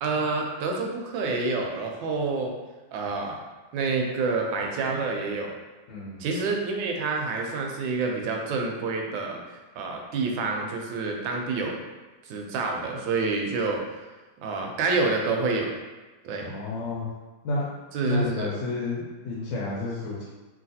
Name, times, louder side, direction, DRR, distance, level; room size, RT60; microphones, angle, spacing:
voice 1, 0.0-2.5 2.9-3.4 3.7-5.5 6.2-11.8 12.2-13.8 14.4-15.7 16.2-16.5 17.9-18.5, right 3 dB, 85° right, 1 dB, 1.3 m, -28 dB
voice 2, 5.9-6.2 16.4-17.1 17.4-17.8 18.0-20.2, left 2 dB, 85° left, -6 dB, 1.4 m, -30 dB
3.1 x 2.7 x 2.6 m, 1.2 s
omnidirectional pair, 2.0 m